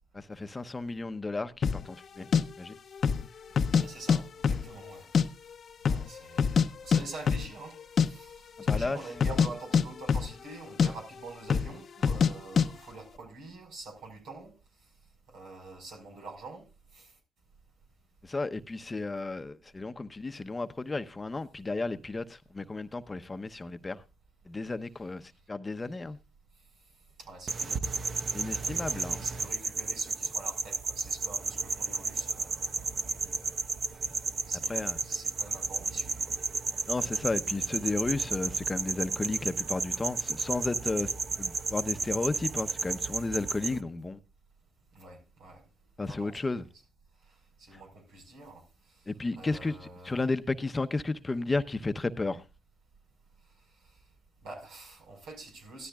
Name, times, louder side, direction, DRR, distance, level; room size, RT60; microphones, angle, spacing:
voice 1, 0.1-2.3 2.6-2.8 8.6-9.0 18.2-24.0 24.4-26.2 28.3-29.2 34.5-35.0 36.9-41.1 41.4-44.2 46.0-46.6 47.7-47.8 49.1-52.4, left 3 dB, 25° left, 0.9 m, -33 dB
sound 1, 1.6-1.8 2.3-2.4 2.9-3.3 3.5-4.2 4.4-5.2 5.5-5.6 5.8-6.7 6.9-7.0 7.3-7.5 7.8-8.1 8.6-8.9 9.2-10.5 10.8-10.9 11.5-11.7 12.0-12.3 12.6-12.7, left 6 dB, 55° left, 0.8 m, -24 dB
voice 2, 3.6-5.1 5.9-14.5 15.3-16.7 16.9-17.1 27.2-28.1 28.4-33.4 34.5-36.4 44.9-45.6 46.1-46.4 47.6-48.6 49.4-50.2 54.4-55.9, right 3 dB, 80° right, 5.2 m, -46 dB
sound 2, 27.5-43.8, right 4 dB, 55° right, 1.1 m, -33 dB
16.5 x 13.0 x 2.4 m
supercardioid pair, 60°, 0 cm